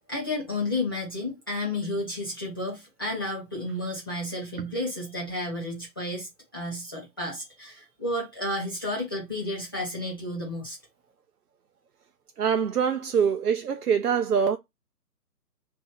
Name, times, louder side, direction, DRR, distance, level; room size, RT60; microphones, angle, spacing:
voice 1, 0.1-10.8, left 1 dB, 15° left, 0.8 m, -32 dB
voice 2, 12.4-14.6, right 7 dB, 65° right, 0.5 m, -24 dB
3.0 x 2.6 x 3.6 m
figure-of-eight pair, 150°, 50 cm